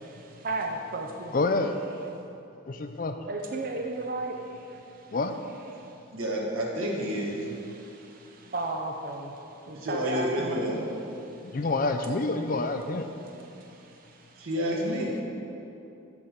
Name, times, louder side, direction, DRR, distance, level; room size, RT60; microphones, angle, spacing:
voice 1, 0.0-1.3 3.3-5.1 5.7-5.9 6.6-6.8 7.1-10.9 11.2-11.6 13.3-14.5 14.9-15.2, right 2 dB, 45° right, 2 dB, 0.5 m, -36 dB
voice 2, 1.3-1.7 2.7-3.1 5.1-5.3 11.5-13.1, left 3 dB, 40° left, 7 dB, 0.4 m, -27 dB
voice 3, 6.1-7.4 9.7-10.8 14.4-15.2, equal, 90° right, -2 dB, 1.5 m, -29 dB
7.1 x 5.2 x 6.4 m, 2.8 s
head